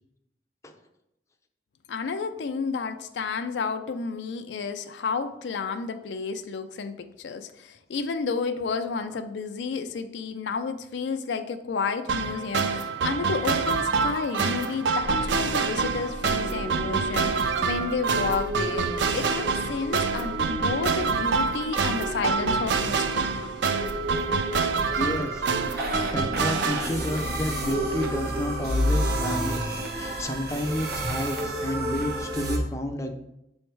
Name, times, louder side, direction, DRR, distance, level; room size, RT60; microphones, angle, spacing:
voice 1, 1.9-23.3, left 5 dB, 75° left, 8 dB, 0.4 m, -31 dB
sound 1, 12.1-26.8, right 5 dB, 80° right, 0.4 m, -26 dB
sound 2, 15.0-32.6, right 1 dB, 65° right, 1.0 m, -32 dB
voice 2, 25.0-33.1, left 1 dB, 15° left, 5 dB, 0.5 m, -31 dB
7.0 x 3.2 x 4.5 m, 0.84 s
head